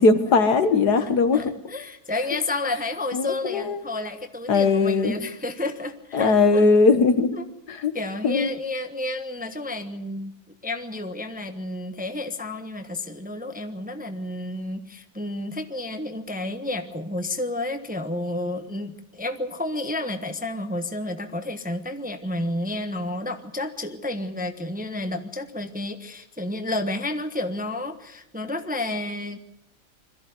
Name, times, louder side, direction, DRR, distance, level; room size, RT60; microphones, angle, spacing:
voice 1, 0.0-1.4 3.1-3.8 4.5-5.2 6.1-7.4 7.7-7.9 8.2-8.5, left 4 dB, 70° left, 9 dB, 2.0 m, -19 dB
voice 2, 1.3-6.6 7.3-7.5 7.9-10.3 10.6-29.4, left 2 dB, 5° right, 7 dB, 1.0 m, -31 dB
22.0 x 14.0 x 9.5 m, 0.81 s
omnidirectional pair, 1.8 m